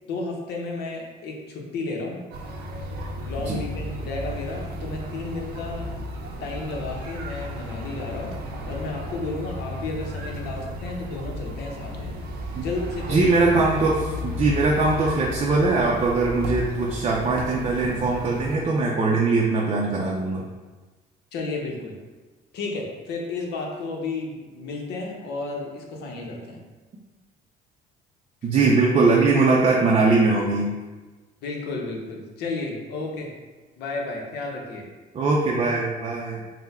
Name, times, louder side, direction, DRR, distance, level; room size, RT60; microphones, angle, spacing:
voice 1, 0.1-2.2 3.2-5.9 6.4-8.4 8.7-12.2 12.6-13.4 21.3-22.0 22.5-26.6 31.4-33.3 33.8-34.8, left 3 dB, 80° left, 0 dB, 0.8 m, -32 dB
sound 1, 2.3-18.6, equal, 75° right, 0.6 m, -34 dB
voice 2, 13.1-20.4 28.4-30.7 35.1-36.4, right 3 dB, 35° right, -2 dB, 0.5 m, -21 dB
3.7 x 2.1 x 4.2 m, 1.3 s
cardioid pair, 110°, 17 cm